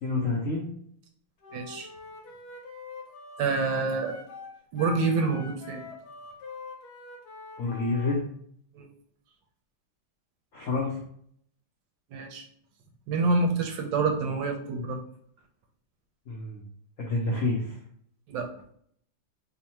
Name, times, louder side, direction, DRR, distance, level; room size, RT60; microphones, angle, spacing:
voice 1, 0.0-0.7 7.6-8.2 10.5-11.0 16.3-16.6 17.0-17.8, left 3 dB, 85° left, -1 dB, 0.7 m, -28 dB
Wind instrument woodwind instrument, 1.4-8.2, left 4 dB, 60° left, 1.2 m, -44 dB
voice 2, 1.5-1.9 3.4-4.2 4.7-5.8 8.7-8.9 12.1-12.4 13.1-15.0 18.3-18.5, right 3 dB, 75° right, 4 dB, 1.2 m, -27 dB
3.6 x 2.1 x 4.3 m, 0.65 s
omnidirectional pair, 2.2 m